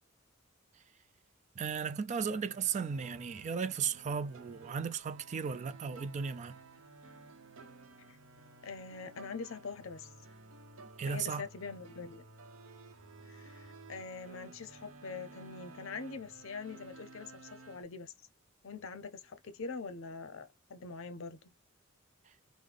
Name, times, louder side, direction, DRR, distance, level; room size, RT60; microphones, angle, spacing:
voice 1, 1.6-6.6 11.0-11.5, right 6 dB, 35° right, 0.3 m, -35 dB
sound 1, 2.2-17.8, right 3 dB, 80° right, 0.8 m, -54 dB
voice 2, 8.6-10.1 11.1-12.2 13.3-18.1 18.6-21.5, left 4 dB, 70° left, 0.6 m, -44 dB
3.6 x 2.1 x 3.3 m
head